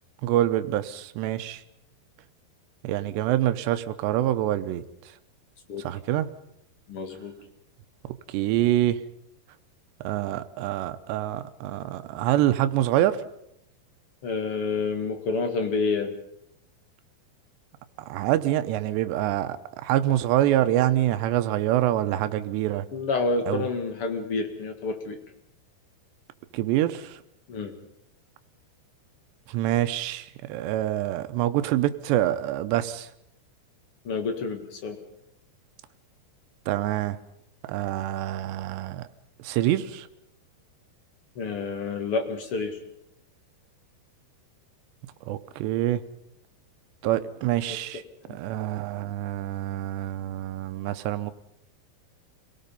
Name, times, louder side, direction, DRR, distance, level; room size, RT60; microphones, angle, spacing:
voice 1, 0.2-1.6 2.8-4.8 5.8-6.3 8.3-9.0 10.0-13.2 18.1-19.6 19.8-22.9 23.5-23.7 26.5-27.2 29.5-33.1 36.7-37.2 37.7-39.0 39.4-40.1 45.3-46.0 47.0-48.0 48.3-51.3, right 13 dB, 85° right, 10 dB, 3.1 m, -26 dB
voice 2, 6.9-7.3 14.2-16.1 22.9-25.2 27.5-27.7 34.0-35.0 41.4-42.8 48.2-48.4, left 4 dB, 45° left, 5 dB, 2.0 m, -29 dB
27.5 x 18.0 x 5.4 m, 0.80 s
omnidirectional pair, 4.9 m